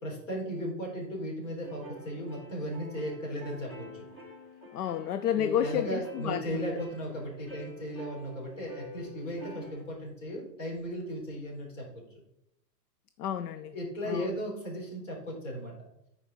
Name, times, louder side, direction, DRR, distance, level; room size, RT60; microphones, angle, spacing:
voice 1, 0.0-4.0 5.4-12.0 13.7-15.8, equal, 50° left, 3.9 m, -36 dB
sound 1, 1.6-9.8, left 1 dB, 15° left, 1.1 m, -48 dB
voice 2, 4.7-6.6 13.2-13.7 14.1-14.3, left 10 dB, 65° left, 0.6 m, -30 dB
12.5 x 5.0 x 4.0 m
hypercardioid pair, 180°, 49 cm